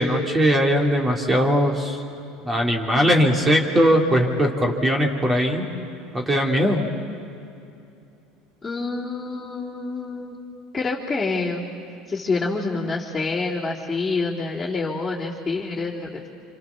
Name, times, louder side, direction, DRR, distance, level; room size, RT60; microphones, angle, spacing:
voice 1, 0.0-2.0 2.4-5.7 6.1-6.9, equal, 20° right, 1 dB, 3.0 m, -20 dB
voice 2, 8.6-10.4 10.7-11.7 12.1-16.3, left 3 dB, 15° left, -8 dB, 3.4 m, -27 dB
26.5 x 26.0 x 7.1 m, 2.7 s
hypercardioid pair, 90°, 0 cm